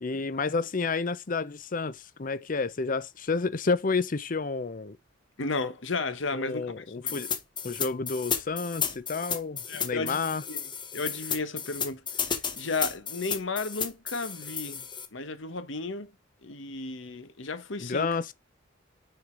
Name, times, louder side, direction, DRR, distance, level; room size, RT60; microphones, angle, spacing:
voice 1, 0.0-5.0 6.3-7.3 7.6-10.4 17.8-18.3, left 4 dB, 45° left, 0.6 m, -30 dB
voice 2, 5.4-7.2 9.7-12.0 12.5-14.8 15.1-16.1 16.4-18.1, left 3 dB, 70° left, 1.1 m, -34 dB
sound 1, 7.1-15.1, left 7 dB, 25° left, 1.1 m, -33 dB
6.5 x 4.8 x 3.7 m
head